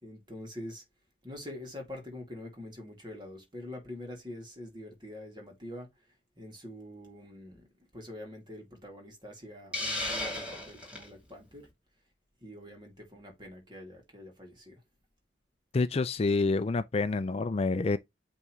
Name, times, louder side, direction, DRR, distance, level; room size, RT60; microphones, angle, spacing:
voice 1, 0.0-0.8 1.2-5.9 6.4-7.7 7.9-11.7 12.4-14.8, left 1 dB, 25° right, 2.5 m, -45 dB
Hiss, 9.7-11.1, left 1 dB, 5° right, 2.9 m, -34 dB
voice 2, 15.7-18.0, left 3 dB, 35° left, 0.4 m, -27 dB
8.4 x 3.6 x 3.2 m
head